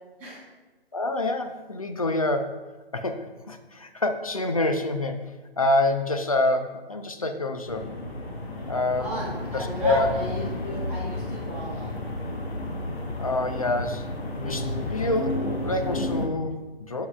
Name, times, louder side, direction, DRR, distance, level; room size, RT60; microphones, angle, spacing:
voice 1, 0.9-2.6 2.9-5.2 5.6-7.9 8.7-9.2 9.5-10.2 13.2-14.1 14.4-17.1, left 2 dB, 35° left, 7 dB, 0.4 m, -27 dB
sound 1, 7.7-16.3, left 1 dB, 75° left, 1.2 m, -32 dB
voice 2, 9.0-12.0, equal, 5° right, -11 dB, 1.4 m, -35 dB
7.1 x 6.9 x 2.4 m, 1.2 s
figure-of-eight pair, 145°, 31 cm